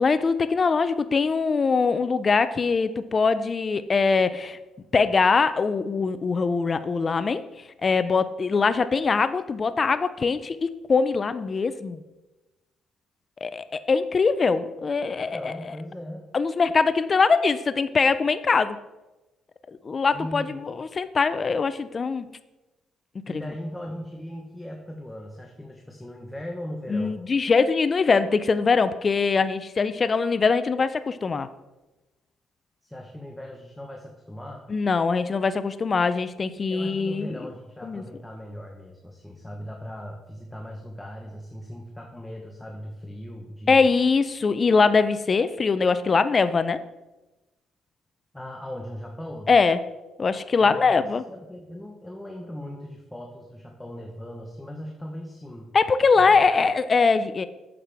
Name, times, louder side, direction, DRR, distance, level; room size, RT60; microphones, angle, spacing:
voice 1, 0.0-4.6 4.9-7.4 7.8-12.0 13.4-15.5 16.3-18.8 19.8-22.3 23.3-23.4 26.9-31.5 34.7-37.3 37.8-38.0 43.7-46.8 49.5-49.8 50.2-51.2 55.7-57.5, left 4 dB, 35° left, 13 dB, 0.4 m, -22 dB
voice 2, 15.1-16.3 20.1-20.6 23.3-27.2 32.8-34.6 36.7-43.9 48.3-49.5 50.6-55.7 56.1-56.3, equal, 10° left, 1 dB, 1.0 m, -38 dB
8.6 x 7.3 x 3.4 m, 1.1 s
cardioid pair, 90°, 0 cm